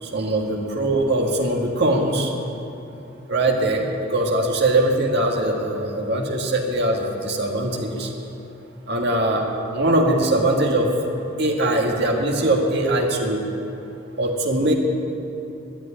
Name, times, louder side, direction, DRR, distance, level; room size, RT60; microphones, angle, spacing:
voice 1, 0.0-2.3 3.3-8.1 8.9-9.5 9.7-10.9 11.4-13.4 14.2-14.7, right 1 dB, 60° right, 0 dB, 1.9 m, -21 dB
12.0 x 9.5 x 9.9 m, 2.9 s
head